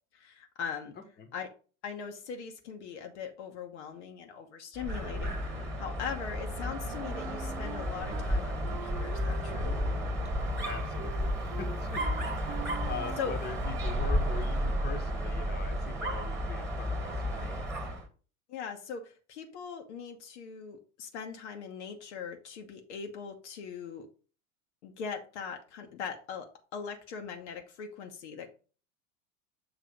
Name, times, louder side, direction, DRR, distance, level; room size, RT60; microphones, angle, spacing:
voice 1, 0.1-0.9 1.3-1.5 1.8-9.7 13.2-13.3 18.5-24.1 24.8-28.5, left 6 dB, 55° left, 4 dB, 1.1 m, -40 dB
Dog, 4.8-18.1, equal, 5° right, 1.6 m, -32 dB
Wind instrument woodwind instrument, 6.6-8.3 8.6-14.0, right 10 dB, 45° right, 0.8 m, -46 dB
voice 2, 10.6-17.7, left 6 dB, 25° left, 5 dB, 1.2 m, -42 dB
6.9 x 3.3 x 5.2 m, 0.37 s
figure-of-eight pair, 85°, 41 cm